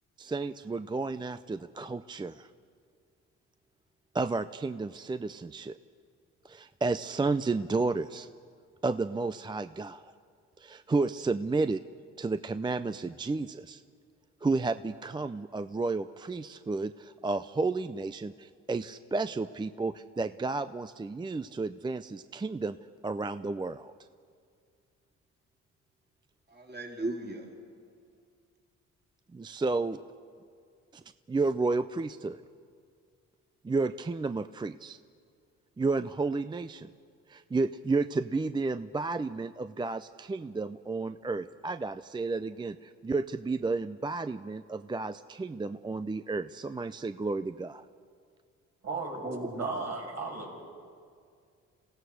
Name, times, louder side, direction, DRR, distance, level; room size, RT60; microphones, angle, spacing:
voice 1, 0.2-2.5 4.1-5.8 6.4-8.3 8.8-10.1 10.6-11.8 12.2-13.8 14.4-22.8 23.0-23.9 29.3-30.0 31.3-32.4 33.6-35.0 35.8-36.9 37.3-47.8, right 3 dB, 15° right, 12 dB, 0.5 m, -32 dB
voice 2, 26.5-27.5 49.2-49.9, right 2 dB, 35° right, 0 dB, 3.7 m, -36 dB
voice 3, 48.8-49.2 49.6-50.6, right 3 dB, 60° right, 0 dB, 6.2 m, -35 dB
27.5 x 16.5 x 6.4 m, 2.2 s
cardioid pair, 90°, 30 cm